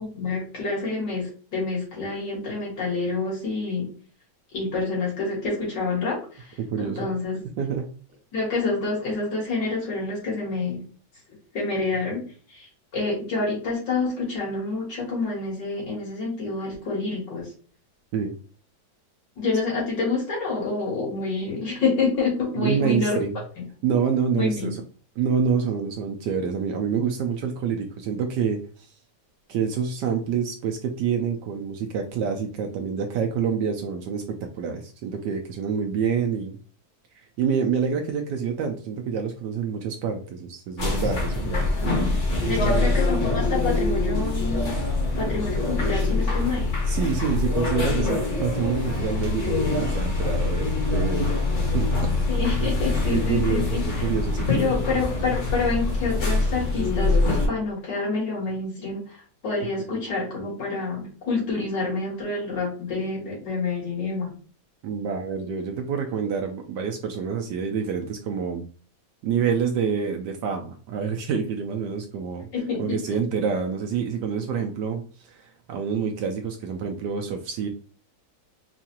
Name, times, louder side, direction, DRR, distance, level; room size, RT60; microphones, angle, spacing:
voice 1, 0.1-3.9 4.5-7.4 8.3-10.8 11.5-12.2 12.5-17.5 19.4-23.2 24.4-24.7 41.5-42.2 42.5-44.7 45.2-46.7 52.3-53.8 54.5-59.2 59.4-64.3 72.5-73.2, left 3 dB, 65° left, -4 dB, 2.5 m, -28 dB
voice 2, 6.7-7.1 7.6-7.9 18.1-18.3 22.6-23.3 23.8-24.8 25.2-28.9 29.5-36.6 37.2-41.7 42.4-42.9 46.9-51.4 51.7-52.3 52.6-52.7 53.1-54.9 64.8-68.7 69.2-72.5 72.8-77.7, right 6 dB, 75° right, 4 dB, 1.1 m, -27 dB
sound 1, 40.8-57.5, left 3 dB, 40° left, 1.5 m, -24 dB
4.6 x 2.5 x 2.8 m, 0.40 s
omnidirectional pair, 2.1 m